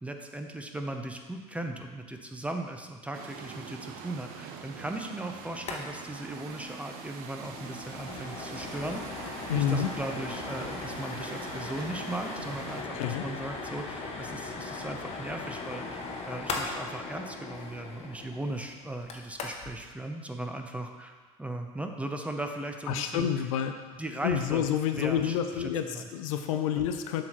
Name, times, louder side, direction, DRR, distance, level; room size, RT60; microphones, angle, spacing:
voice 1, 0.0-23.5 23.9-26.1 26.8-26.9, right 1 dB, 5° right, 4 dB, 0.6 m, -38 dB
sound 1, 3.1-12.8, right 6 dB, 50° right, 0.7 m, -44 dB
sound 2, 5.5-5.8 6.1-6.2 6.5-6.7 7.1-19.8, left 3 dB, 35° left, 1.0 m, -39 dB
voice 2, 9.5-9.9 12.9-13.2 22.9-23.7 24.2-27.2, left 9 dB, 65° left, 7 dB, 0.5 m, -28 dB
7.5 x 6.0 x 2.9 m, 1.4 s
figure-of-eight pair, 70°, 19 cm